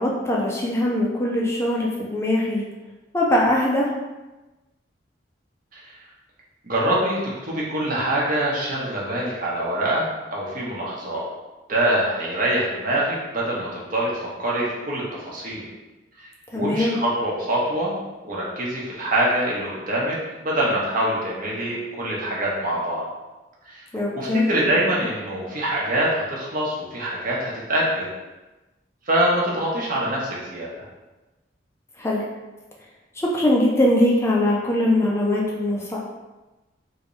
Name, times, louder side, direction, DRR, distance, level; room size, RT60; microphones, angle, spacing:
voice 1, 0.0-2.7 3.1-3.9 16.5-17.0 23.9-24.5 32.0-32.2 33.1-36.0, left 1 dB, 15° left, -3 dB, 0.4 m, -21 dB
voice 2, 6.6-11.2 11.7-15.6 16.5-17.9 18.2-20.2 20.4-23.0 23.7-23.8 24.1-28.1 29.1-30.8, right 1 dB, 50° right, -5 dB, 0.9 m, -24 dB
3.2 x 2.6 x 3.1 m, 1.1 s
head